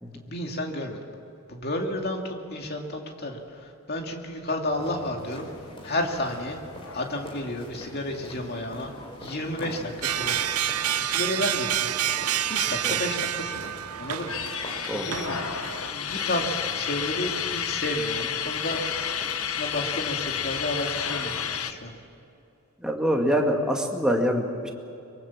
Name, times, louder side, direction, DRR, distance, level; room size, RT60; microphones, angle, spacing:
voice 1, 0.3-1.0 1.5-5.5 5.8-6.6 6.9-8.9 9.2-10.6 11.0-12.0 12.5-14.3 14.6-15.4 15.9-18.8 19.1-21.9, left 1 dB, 45° left, 2 dB, 2.6 m, -32 dB
sound 1, 4.7-21.7, equal, 25° left, 4.6 m, -44 dB
sound 2, 6.8-11.9 12.2-12.3 12.5-13.5 13.9-21.7, left 8 dB, 75° left, 1.1 m, -32 dB
sound 3, 10.0-15.9, right 11 dB, 85° right, 0.6 m, -28 dB
voice 2, 22.8-24.7, equal, 5° right, 1 dB, 2.1 m, -25 dB
24.0 x 22.5 x 7.4 m, 2.7 s
head